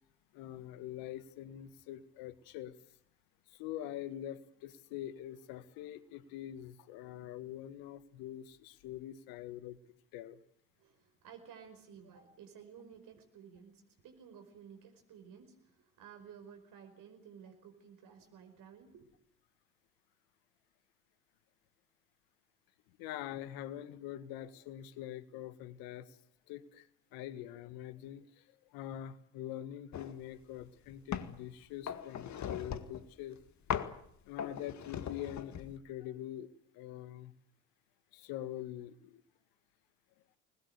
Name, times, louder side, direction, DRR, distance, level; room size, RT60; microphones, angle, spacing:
voice 1, 0.3-2.8 3.5-9.8 10.1-10.4 23.0-26.2 26.5-26.9 27.1-28.2 28.7-33.4 34.3-36.5 36.7-37.3 38.1-39.2, left 12 dB, 70° left, 13 dB, 1.8 m, -44 dB
voice 2, 10.8-19.2, right 7 dB, 60° right, 5 dB, 5.2 m, -54 dB
sound 1, 29.9-30.2 30.6-31.4 31.9-33.1 33.7-34.0 34.4-35.8, left 8 dB, 50° left, 2.0 m, -39 dB
27.5 x 21.0 x 8.2 m, 0.68 s
hypercardioid pair, 55°, 37 cm